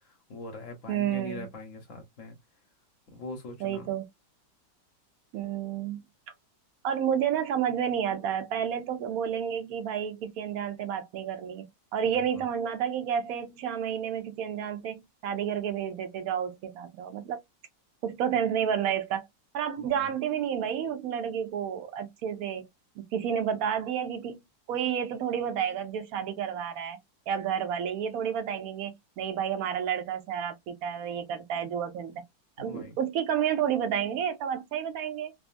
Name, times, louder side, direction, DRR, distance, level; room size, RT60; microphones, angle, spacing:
voice 1, 0.0-2.4 3.1-3.9 12.1-12.5 19.8-20.1 32.6-33.0, left 2 dB, 55° left, 0.9 m, -42 dB
voice 2, 0.9-1.5 3.6-4.0 5.3-6.0 6.8-11.7 11.9-17.4 18.0-19.2 19.5-22.7 23.1-24.4 24.7-27.0 27.3-32.1 32.6-35.3, right 8 dB, 75° right, 0.8 m, -30 dB
3.6 x 2.0 x 2.4 m
omnidirectional pair, 2.1 m